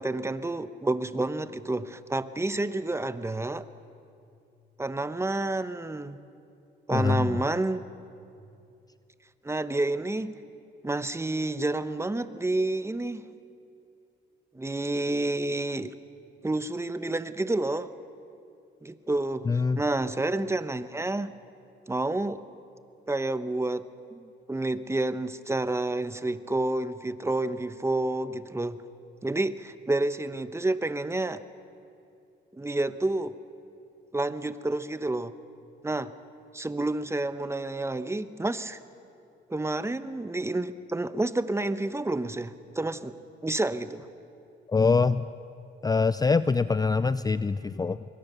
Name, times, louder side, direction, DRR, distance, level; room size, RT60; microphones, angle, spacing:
voice 1, 0.0-3.6 4.8-6.2 6.9-7.8 9.4-10.4 10.8-13.3 14.5-15.9 16.4-17.9 18.8-19.5 19.8-21.3 21.9-22.4 23.1-28.8 29.2-31.4 32.5-33.4 34.1-35.3 35.8-36.1 36.5-38.8 39.5-43.1 43.4-44.1, right 2 dB, 15° right, 12 dB, 1.0 m, -29 dB
voice 2, 6.9-7.4 19.5-19.8 44.7-45.3 45.8-48.0, left 4 dB, 20° left, 14 dB, 0.5 m, -24 dB
25.5 x 23.0 x 6.9 m, 2.6 s
cardioid pair, 90°, 20 cm